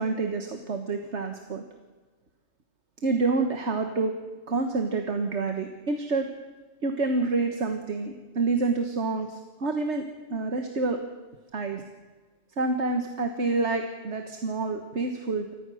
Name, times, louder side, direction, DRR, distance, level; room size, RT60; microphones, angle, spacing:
voice 1, 0.0-1.6 3.0-4.1 4.5-6.3 6.8-10.0 10.3-11.0 11.5-11.8 12.6-15.5, right 3 dB, 70° right, 5 dB, 1.7 m, -28 dB
28.0 x 15.0 x 6.3 m, 1.3 s
omnidirectional pair, 1.2 m